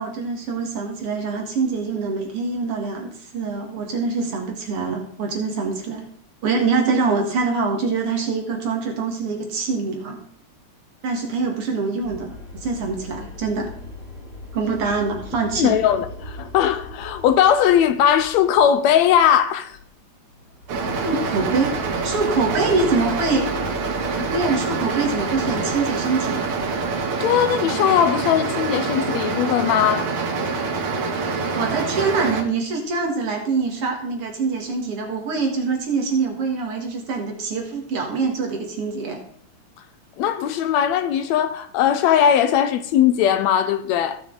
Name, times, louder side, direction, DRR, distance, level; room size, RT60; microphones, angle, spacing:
voice 1, 0.0-6.0 6.4-10.2 11.0-13.7 14.5-15.8 21.0-21.8 22.0-23.5 24.2-26.5 31.5-39.2, right 4 dB, 55° right, 2.6 m, -24 dB
sound 1, 12.0-18.7 19.1-19.4 19.7-19.8 20.3-27.0, left 2 dB, 35° left, 4.3 m, -40 dB
voice 2, 15.6-19.8 27.2-30.1 40.2-44.2, left 9 dB, 80° left, 1.8 m, -19 dB
sound 2, 20.7-32.4, right 4 dB, 70° right, 2.6 m, -25 dB
16.0 x 6.1 x 3.9 m
omnidirectional pair, 3.3 m